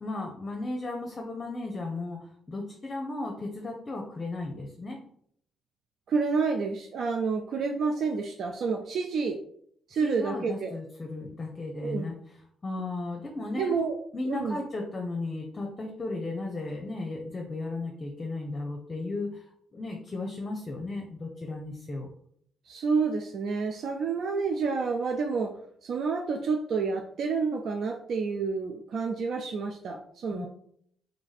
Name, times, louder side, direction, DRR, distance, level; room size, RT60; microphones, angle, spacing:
voice 1, 0.0-5.0 10.0-12.1 12.6-13.7 14.1-19.4 19.7-22.1 30.3-30.5, left 2 dB, 30° left, 1 dB, 0.7 m, -35 dB
voice 2, 6.1-9.4 9.9-10.7 11.8-12.0 13.5-14.0 14.2-14.6 22.7-25.5 25.8-30.5, right 4 dB, 65° right, 3 dB, 0.4 m, -29 dB
3.2 x 2.5 x 4.0 m, 0.65 s
supercardioid pair, 65°, 0 cm